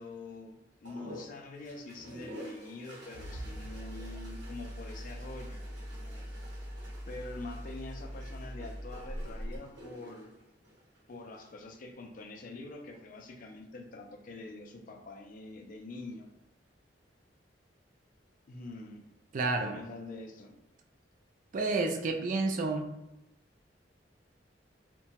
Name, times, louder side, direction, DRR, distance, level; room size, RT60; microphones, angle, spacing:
voice 1, 0.0-5.7 6.3-6.4 7.1-10.3 11.1-16.3 18.5-19.1 19.6-20.6, left 2 dB, 50° left, 2 dB, 0.4 m, -45 dB
sound 1, 0.8-11.5 12.7-13.3, equal, 90° right, 0.8 m, -50 dB
sound 2, 3.2-9.6, equal, 30° left, 1.1 m, -42 dB
voice 2, 19.3-19.8 21.5-22.9, right 3 dB, 45° right, 4 dB, 0.3 m, -30 dB
2.7 x 2.2 x 2.8 m, 0.90 s
head